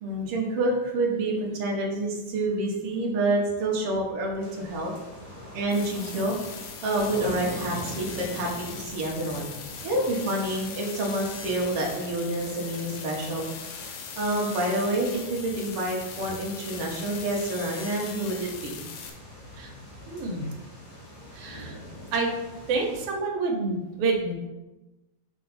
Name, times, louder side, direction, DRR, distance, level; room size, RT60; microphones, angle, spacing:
voice 1, 0.0-4.9 5.5-6.4 6.8-9.5 9.8-13.5 14.2-18.8, right 1 dB, 60° right, -2 dB, 2.0 m, -28 dB
sound 1, 4.4-23.1, left 1 dB, 40° left, 1.5 m, -44 dB
sound 2, 5.7-19.1, left 6 dB, 75° left, 2.1 m, -40 dB
voice 2, 20.1-20.6 21.3-21.8 22.1-22.3 22.7-24.3, right 3 dB, 75° right, 0 dB, 2.4 m, -28 dB
7.1 x 4.1 x 4.1 m, 1.1 s
omnidirectional pair, 3.4 m